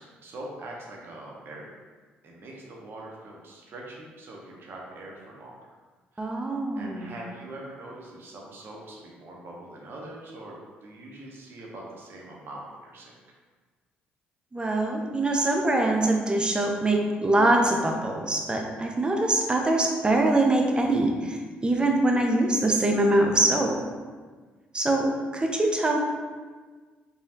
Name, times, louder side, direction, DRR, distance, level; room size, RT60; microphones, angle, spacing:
voice 1, 0.0-1.8 2.2-5.6 6.1-6.4 6.8-10.6 10.8-13.2, right 1 dB, 60° right, -2 dB, 0.8 m, -43 dB
voice 2, 6.2-7.1 14.5-23.8 24.7-26.0, right 2 dB, 20° right, 1 dB, 0.6 m, -23 dB
3.4 x 2.3 x 2.7 m, 1.4 s
supercardioid pair, 60°, 4 cm